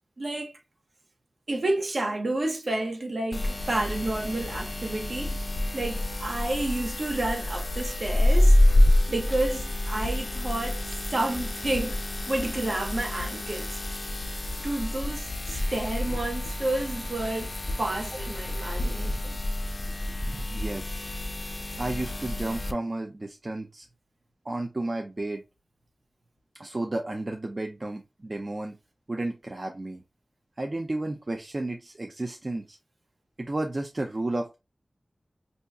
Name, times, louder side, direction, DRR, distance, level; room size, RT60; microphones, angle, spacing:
voice 1, 0.2-0.5 1.5-5.4 5.7-8.6 9.1-10.8 11.1-12.0 12.3-13.7 14.6-17.5 17.8-19.4, right 2 dB, 60° right, 0.8 m, -30 dB
sound 1, 3.3-22.7, left 1 dB, 45° left, 0.4 m, -27 dB
voice 2, 20.2-21.1 21.4-23.9 24.5-25.4 26.6-28.8 29.1-30.0 30.6-32.8 33.4-34.6, right 2 dB, 40° right, 0.5 m, -32 dB
5.4 x 2.7 x 2.3 m
wide cardioid pair, 80°, 0 cm